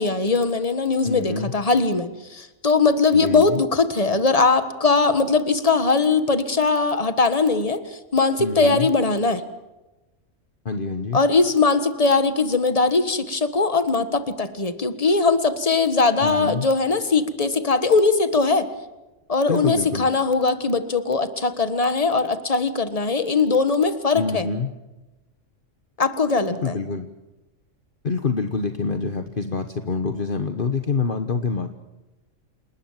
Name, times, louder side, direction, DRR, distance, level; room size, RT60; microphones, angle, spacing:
voice 1, 0.0-9.4 11.1-18.7 19.3-24.5 26.0-26.8, left 4 dB, 30° left, 10 dB, 1.6 m, -20 dB
voice 2, 1.0-1.5 3.1-3.6 8.4-8.9 10.6-11.2 16.2-16.7 19.5-20.1 24.1-24.7 26.5-27.1 28.0-31.7, left 4 dB, 45° left, 8 dB, 1.3 m, -26 dB
28.5 x 19.5 x 7.4 m, 1.1 s
omnidirectional pair, 1.3 m